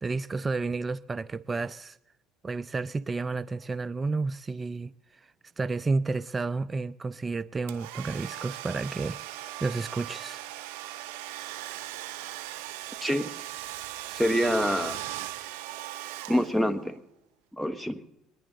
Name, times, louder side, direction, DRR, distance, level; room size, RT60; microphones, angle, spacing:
voice 1, 0.0-2.0 2.4-5.3 5.6-9.2 9.6-10.4, right 3 dB, 25° right, 0.4 m, -31 dB
Domestic sounds home sounds, 7.7-16.8, right 14 dB, 80° right, 0.8 m, -39 dB
voice 2, 14.1-15.0 16.3-16.9 17.5-18.0, equal, ahead, 1.2 m, -26 dB
22.0 x 10.5 x 3.8 m
supercardioid pair, 80°, 0 cm